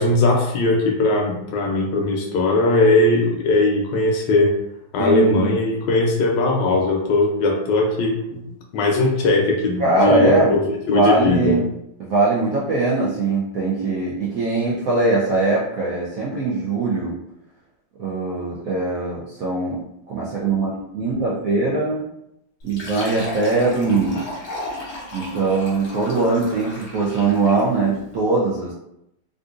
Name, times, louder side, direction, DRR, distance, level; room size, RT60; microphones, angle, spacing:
voice 1, 0.0-4.5 4.9-8.4 8.7-10.6 10.9-11.6, left 2 dB, 75° left, 1 dB, 1.2 m, -19 dB
voice 2, 5.0-5.5 9.8-10.5 10.9-11.6 12.0-17.2 18.0-19.8 20.1-22.1 22.6-24.3 25.1-28.7, right 3 dB, 75° right, -6 dB, 0.8 m, -21 dB
Fill (with liquid), 22.6-27.8, left 1 dB, 50° left, 0.9 m, -34 dB
3.7 x 2.5 x 2.4 m, 0.81 s
omnidirectional pair, 2.1 m